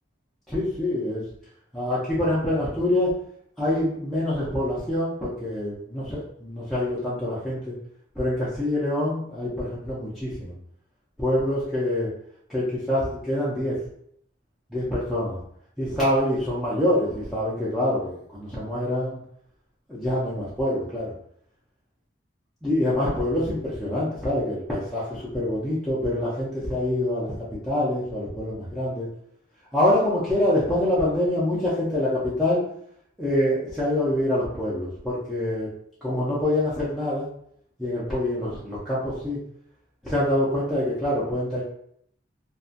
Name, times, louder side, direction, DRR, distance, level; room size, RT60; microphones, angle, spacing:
voice 1, 0.5-1.2 1.7-3.1 3.6-7.7 8.2-10.5 11.2-12.1 12.5-13.8 14.7-15.4 15.8-19.2 19.9-21.1 22.6-27.3 27.6-29.1 29.7-32.6 33.2-35.7 36.0-37.3 37.8-39.4 40.0-41.6, left 1 dB, ahead, -10 dB, 0.4 m, -25 dB
2.6 x 2.1 x 2.4 m, 0.68 s
head